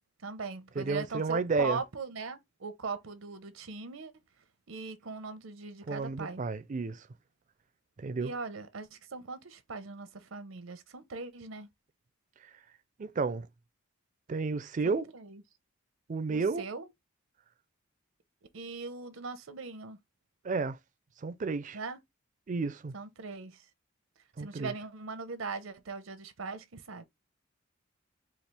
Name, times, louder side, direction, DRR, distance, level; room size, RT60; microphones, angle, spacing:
voice 1, 0.2-4.1 4.7-6.4 8.2-11.7 14.8-15.4 16.3-16.9 18.5-20.0 21.7-22.0 22.9-23.6 24.4-27.0, right 4 dB, 85° right, 0.7 m, -40 dB
voice 2, 0.8-1.8 5.9-7.0 8.0-8.3 13.0-13.5 14.3-15.1 16.1-16.7 20.4-20.8 21.2-21.8 22.5-22.9 24.4-24.7, right 4 dB, 40° right, 0.4 m, -32 dB
4.3 x 2.4 x 3.3 m
head